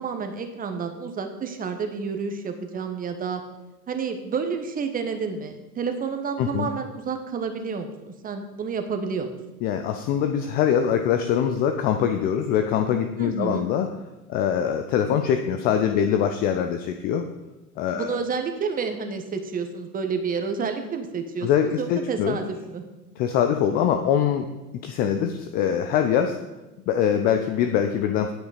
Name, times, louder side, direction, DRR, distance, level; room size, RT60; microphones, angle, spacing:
voice 1, 0.0-3.4 3.9-9.4 13.2-13.7 17.9-22.8, right 5 dB, 20° right, 6 dB, 1.1 m, -30 dB
voice 2, 6.4-6.7 9.6-13.9 14.3-17.3 17.8-18.2 21.4-22.4 23.2-24.5 24.8-26.4 26.9-28.3, left 8 dB, 20° left, 7 dB, 0.4 m, -23 dB
9.1 x 8.4 x 5.1 m, 1.0 s
figure-of-eight pair, 95°, 46 cm